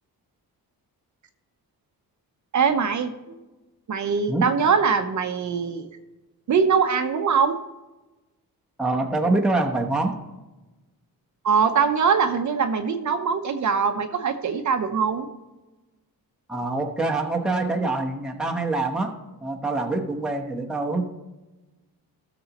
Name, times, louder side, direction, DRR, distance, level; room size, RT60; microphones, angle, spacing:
voice 1, 2.5-3.4 3.9-5.9 6.5-7.5 11.4-15.3, right 6 dB, 50° right, 6 dB, 0.7 m, -22 dB
voice 2, 8.8-10.2 16.5-19.1 19.4-21.0, right 2 dB, ahead, 1 dB, 0.9 m, -25 dB
17.0 x 6.8 x 2.9 m, 1.1 s
wide cardioid pair, 180°, 38 cm